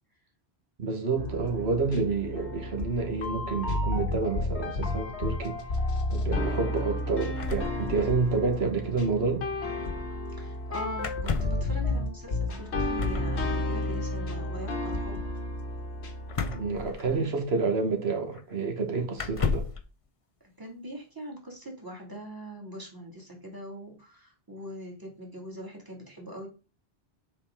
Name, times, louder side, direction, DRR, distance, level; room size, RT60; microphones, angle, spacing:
voice 1, 0.8-5.6 6.1-9.4 16.5-19.6, right 4 dB, 70° right, 1.6 m, -29 dB
sound 1, 1.2-16.9, left 2 dB, 85° left, 1.4 m, -32 dB
sound 2, 7.4-8.4 8.7-8.8 8.9-9.2 11.0-11.7 13.0-13.3 16.3-17.5 18.3-18.4 19.1-19.8, left 5 dB, 40° left, 0.6 m, -33 dB
voice 2, 10.4-15.2 17.0-17.3 20.6-26.5, right 1 dB, 20° right, 2.2 m, -42 dB
7.6 x 4.9 x 3.7 m
omnidirectional pair, 1.1 m